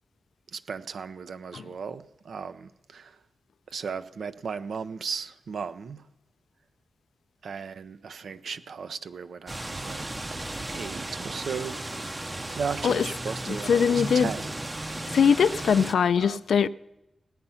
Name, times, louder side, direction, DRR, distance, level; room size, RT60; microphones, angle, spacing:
voice 1, 0.5-3.1 3.7-6.1 7.4-10.1 10.7-11.8 12.6-14.4 16.2-16.4, right 6 dB, 75° right, 0.6 m, -36 dB
sound 1, 9.5-15.9, right 2 dB, 25° right, 0.7 m, -35 dB
voice 2, 13.5-14.3 15.1-16.7, left 7 dB, 85° left, 0.4 m, -22 dB
17.5 x 8.9 x 5.6 m
cardioid pair, 85°, 0 cm